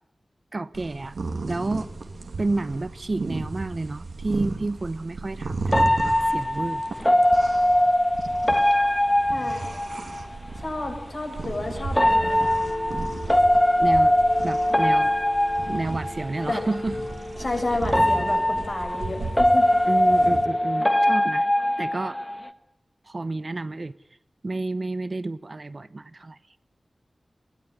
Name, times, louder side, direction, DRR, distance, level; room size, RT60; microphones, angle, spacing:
voice 1, 0.5-1.1 1.5-1.9 2.4-6.8 13.8-14.2 14.4-15.1 15.7-17.0 17.4-17.5 18.4-18.5 19.8-21.5 21.8-22.2 23.0-24.0 24.4-26.4, right 2 dB, 45° right, 14 dB, 0.9 m, -30 dB
sound 1, 0.7-20.4, right 3 dB, 85° right, 2.5 m, -35 dB
sound 2, 5.7-10.3 11.9-16.5 17.9-22.5, left 1 dB, 15° left, 1.4 m, -21 dB
voice 2, 9.3-9.8 10.6-12.7 15.7-15.8 16.5-16.6 17.4-19.7, left 2 dB, 55° left, 2 dB, 7.7 m, -31 dB
sound 3, 11.6-21.3, left 2 dB, 75° left, 6.8 m, -38 dB
22.5 x 17.0 x 9.8 m, 0.79 s
wide cardioid pair, 75°, 0 cm